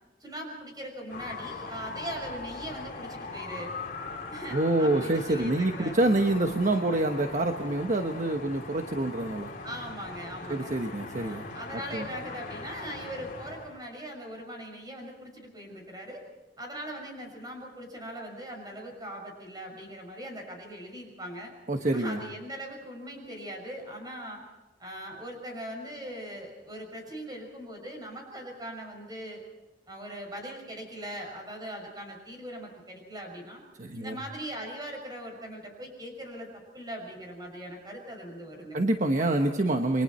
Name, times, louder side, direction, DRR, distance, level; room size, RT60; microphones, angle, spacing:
voice 1, 0.2-3.7 4.3-6.0 9.6-10.7 11.2-16.2 16.6-21.5 21.9-24.4 24.8-29.4 29.9-33.6 33.9-38.8, equal, 25° right, 2 dB, 6.3 m, -40 dB
sound 1, 1.1-13.8, left 3 dB, 50° left, 3.2 m, -40 dB
voice 2, 4.5-9.5 10.5-11.5 11.9-12.1 21.7-22.2 33.8-34.2 38.7-40.0, right 2 dB, 45° right, 5 dB, 1.2 m, -26 dB
29.0 x 23.0 x 4.4 m, 1.1 s
head